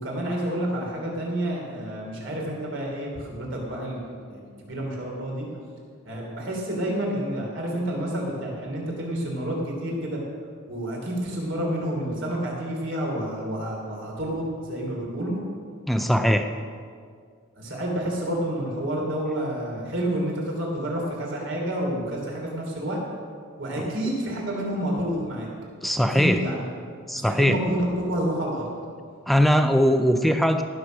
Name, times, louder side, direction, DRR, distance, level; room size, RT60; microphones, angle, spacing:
voice 1, 0.0-5.5 6.0-10.2 10.7-15.4 17.6-23.0 23.6-25.5 26.1-26.7 27.1-28.7, right 1 dB, 60° right, -1 dB, 3.1 m, -29 dB
voice 2, 15.9-16.5 23.8-23.9 25.8-26.4 27.1-27.6 29.3-30.6, equal, ahead, 7 dB, 0.4 m, -20 dB
18.5 x 6.3 x 6.3 m, 2.1 s
head